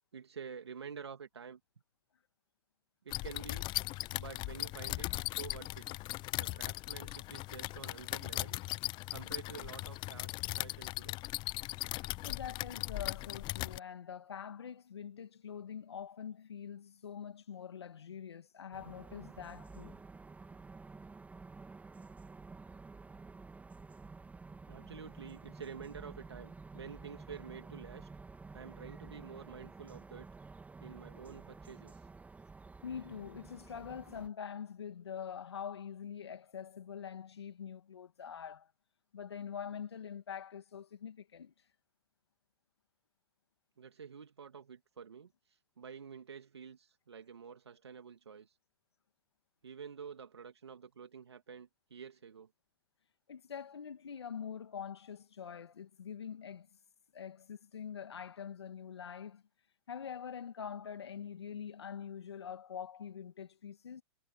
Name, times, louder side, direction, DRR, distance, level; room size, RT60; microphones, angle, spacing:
voice 1, 0.1-1.6 3.0-3.7 4.2-5.9 6.4-8.6 9.1-11.2 24.7-28.1 28.5-30.3 30.8-32.0 43.8-45.3 45.8-48.5 49.6-52.5, right 6 dB, 85° right, 2.6 m, -49 dB
sound 1, 3.1-13.8, left 20 dB, 35° left, 0.6 m, -39 dB
voice 2, 12.2-20.0 32.8-38.7 39.1-41.5 53.3-56.7 57.1-59.4 59.9-64.0, left 8 dB, 85° left, 2.4 m, -44 dB
sound 2, 18.7-34.3, right 4 dB, 10° right, 2.5 m, -51 dB
hypercardioid pair, 110°, 13 cm